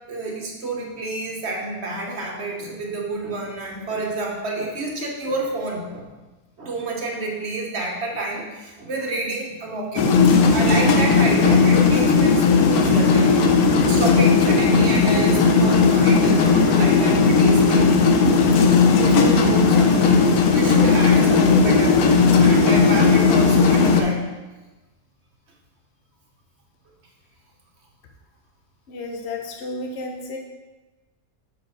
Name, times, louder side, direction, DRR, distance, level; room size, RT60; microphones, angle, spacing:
voice 1, 0.1-6.1 6.6-13.5 13.8-17.9 19.0-22.0 22.4-24.2, right 2 dB, 50° right, 0 dB, 1.3 m, -29 dB
sound 1, 10.0-24.0, left 4 dB, 75° left, 1.1 m, -16 dB
voice 2, 28.9-30.4, left 2 dB, 50° left, 2 dB, 1.0 m, -32 dB
6.9 x 4.6 x 4.8 m, 1.2 s
omnidirectional pair, 1.6 m